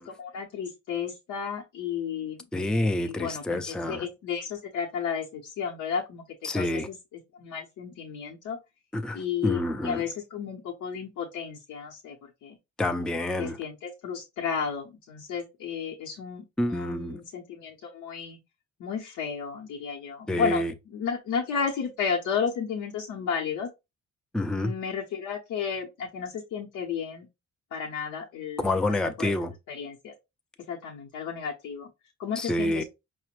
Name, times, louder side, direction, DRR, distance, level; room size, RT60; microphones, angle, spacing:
voice 1, 0.0-2.4 3.0-6.2 6.5-8.6 9.1-12.6 13.4-18.4 18.8-23.7 24.5-27.3 27.7-28.6 29.2-29.4 29.7-30.1 30.7-31.9 32.2-32.8, left 6 dB, 75° left, 0.8 m, -33 dB
voice 2, 2.5-4.1 6.4-6.9 8.9-10.0 12.8-13.6 16.6-17.2 20.3-20.7 24.3-24.7 28.6-29.5 32.4-32.8, left 1 dB, 5° left, 0.3 m, -28 dB
4.8 x 2.1 x 2.9 m
cardioid pair, 90°, 30 cm